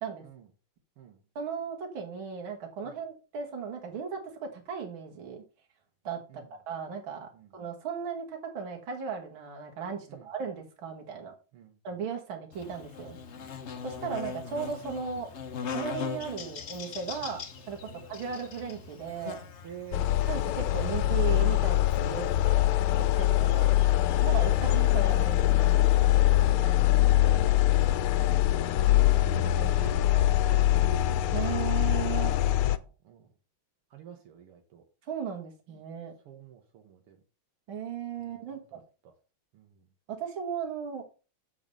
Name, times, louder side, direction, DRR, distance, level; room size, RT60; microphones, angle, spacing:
voice 1, 1.4-5.4 6.0-11.3 11.8-13.2 13.8-15.3 15.7-19.4 20.3-22.3 22.9-23.8 24.2-25.8 31.3-32.4 35.1-36.1 37.7-38.8 40.1-41.0, right 6 dB, 65° right, 2 dB, 2.4 m, -36 dB
Buzz, 12.5-26.5, left 6 dB, 60° left, 0.7 m, -42 dB
voice 2, 19.6-20.1 22.0-23.6 24.6-24.7 25.7-27.2 28.1-30.9 32.1-33.3 33.9-34.8 36.3-37.2 38.2-39.2 39.5-39.9, right 9 dB, 85° right, 3 dB, 2.1 m, -49 dB
sound 1, 19.9-32.8, left 14 dB, 80° left, 1.4 m, -23 dB
7.6 x 4.9 x 5.3 m, 0.33 s
omnidirectional pair, 2.4 m